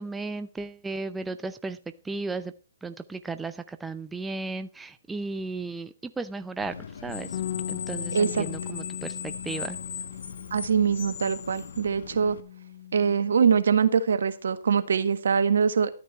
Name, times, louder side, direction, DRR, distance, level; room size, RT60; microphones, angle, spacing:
voice 1, 0.0-1.8 2.0-2.5 2.8-6.7 7.0-7.4 7.7-9.8, right 3 dB, 5° right, 0.6 m, -35 dB
Screech, 6.6-12.4, left 6 dB, 65° left, 1.6 m, -38 dB
Bass guitar, 7.3-13.6, left 12 dB, 40° left, 1.1 m, -39 dB
voice 2, 8.1-8.4 10.5-12.4 12.9-15.9, right 6 dB, 70° right, 1.5 m, -23 dB
13.5 x 9.2 x 4.4 m
hypercardioid pair, 135°, 0 cm